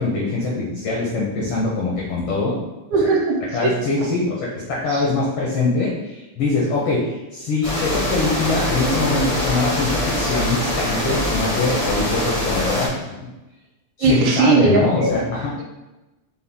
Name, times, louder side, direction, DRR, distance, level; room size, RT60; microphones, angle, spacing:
voice 1, 0.0-2.6 3.5-12.9 14.0-15.5, left 3 dB, 80° left, -4 dB, 1.3 m, -23 dB
voice 2, 2.9-3.7 4.0-4.1 4.9-5.1 14.0-15.2 15.5-15.6, right 4 dB, 80° right, -1 dB, 2.0 m, -19 dB
sound 1, 7.6-12.9, left 1 dB, 45° left, 0.5 m, -23 dB
5.6 x 2.2 x 3.4 m, 1.0 s
omnidirectional pair, 3.4 m